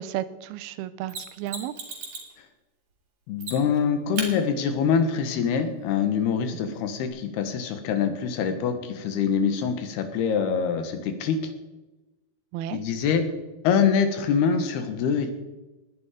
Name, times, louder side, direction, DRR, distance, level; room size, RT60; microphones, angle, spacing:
voice 1, 0.0-1.7 12.5-12.8, right 12 dB, 85° right, 15 dB, 2.6 m, -33 dB
Mechanisms, 1.1-2.3 3.4-3.8 4.2-4.3 7.1-7.2, right 4 dB, 55° right, 4.2 m, -35 dB
voice 2, 3.3-11.4 12.7-13.3 13.6-15.3, left 7 dB, 90° left, 8 dB, 3.4 m, -24 dB
18.5 x 10.0 x 5.0 m, 1.1 s
omnidirectional pair, 4.4 m